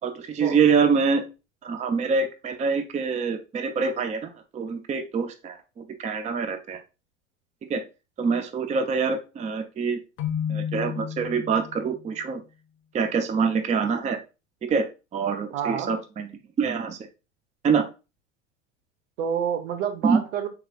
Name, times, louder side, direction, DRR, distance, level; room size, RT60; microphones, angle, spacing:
voice 1, 0.0-1.2 1.6-6.8 7.7-7.8 8.2-10.0 10.5-12.4 12.9-14.2 14.6-14.8 15.1-16.3 16.6-17.0 17.6-17.9 20.0-20.2, right 5 dB, 20° right, 0.5 m, -25 dB
Keyboard (musical), 10.2-12.0, left 8 dB, 35° left, 0.6 m, -31 dB
voice 2, 15.5-15.9 19.2-20.5, right 8 dB, 70° right, 0.9 m, -28 dB
4.7 x 3.5 x 2.3 m
hypercardioid pair, 80°, 37 cm